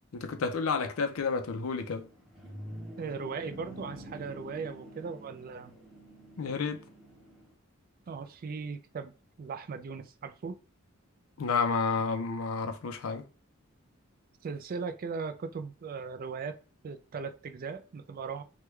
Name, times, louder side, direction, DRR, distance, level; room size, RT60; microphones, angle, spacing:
voice 1, 0.1-2.1 6.4-6.8 11.4-13.2, left 5 dB, 90° left, 0.5 m, -30 dB
sound 1, 2.0-7.5, equal, ahead, 0.7 m, -47 dB
voice 2, 3.0-5.7 8.1-9.1 9.4-10.6 14.4-16.6 16.8-18.4, right 5 dB, 45° right, 0.3 m, -38 dB
3.2 x 2.2 x 3.1 m
head